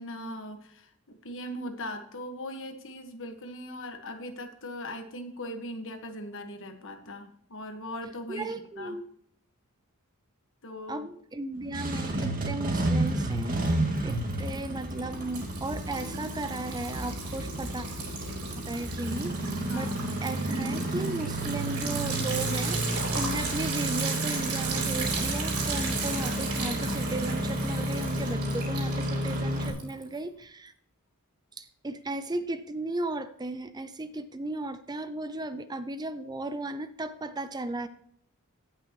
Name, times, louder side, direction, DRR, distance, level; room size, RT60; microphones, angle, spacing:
voice 1, 0.0-9.0 10.6-11.1 19.7-20.0, left 1 dB, 60° left, 6 dB, 1.5 m, -39 dB
voice 2, 8.3-9.0 10.9-13.6 14.0-17.9 18.7-19.9 20.2-30.7 31.6-37.9, right 2 dB, 20° right, 12 dB, 0.5 m, -35 dB
Engine starting, 11.6-29.7, right 1 dB, 40° right, 2.0 m, -31 dB
Liquid, 13.1-13.7 14.0-30.2, right 4 dB, 80° right, 3.8 m, -36 dB
17.5 x 6.2 x 3.0 m, 0.67 s
head